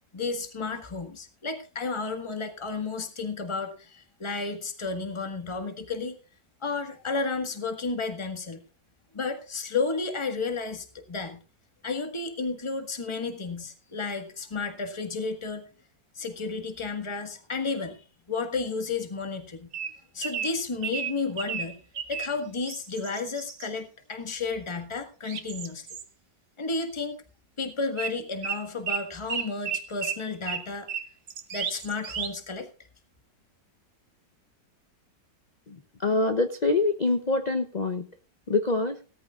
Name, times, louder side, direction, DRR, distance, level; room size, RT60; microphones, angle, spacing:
voice 1, 0.1-6.2 6.6-8.6 9.1-11.4 11.8-15.7 16.1-19.7 20.1-21.8 22.1-25.9 26.6-27.2 27.6-30.9 31.5-32.7, left 4 dB, 15° left, 6 dB, 1.5 m, -32 dB
sound 1, 19.7-22.3 22.6-23.7 25.2-26.0 28.0-28.1 28.4-32.3, right 7 dB, 45° right, 1.1 m, -33 dB
voice 2, 35.7-38.1 38.5-39.0, left 3 dB, 70° left, 8 dB, 0.4 m, -25 dB
18.0 x 13.5 x 2.4 m, 0.35 s
omnidirectional pair, 1.9 m